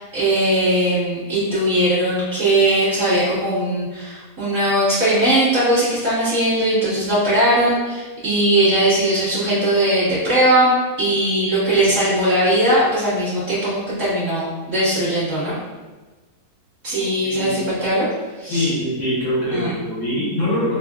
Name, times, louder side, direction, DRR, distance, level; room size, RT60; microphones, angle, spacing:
voice 1, 0.0-15.6 16.8-18.1 18.4-18.7 19.5-19.8, right 1 dB, 35° right, -13 dB, 1.2 m, -19 dB
voice 2, 16.9-17.5 18.5-20.8, left 1 dB, 55° left, -9 dB, 1.5 m, -23 dB
5.2 x 2.5 x 2.4 m, 1.3 s
omnidirectional pair, 3.6 m